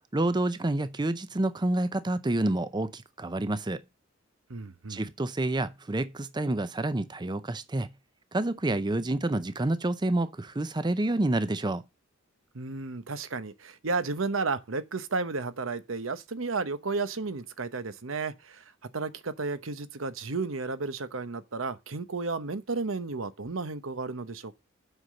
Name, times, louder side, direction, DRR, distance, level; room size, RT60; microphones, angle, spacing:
voice 1, 0.1-3.8 4.9-7.9 8.3-11.8, right 2 dB, 20° right, 0.6 m, -28 dB
voice 2, 4.5-5.0 12.5-18.6 18.9-24.5, right 3 dB, 80° right, 0.9 m, -33 dB
8.1 x 5.7 x 6.4 m
head